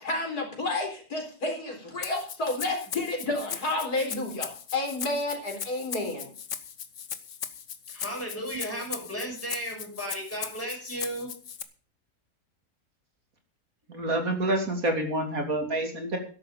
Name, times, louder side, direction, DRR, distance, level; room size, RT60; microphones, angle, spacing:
voice 1, 0.0-6.3, left 2 dB, 80° left, 2 dB, 4.6 m, -30 dB
Rattle (instrument), 2.0-11.6, left 7 dB, 55° left, 1.3 m, -38 dB
voice 2, 7.9-11.3, equal, 10° left, -2 dB, 6.9 m, -35 dB
voice 3, 13.9-16.2, right 1 dB, 65° right, 4 dB, 3.3 m, -28 dB
13.0 x 11.5 x 5.2 m, 0.39 s
omnidirectional pair, 1.6 m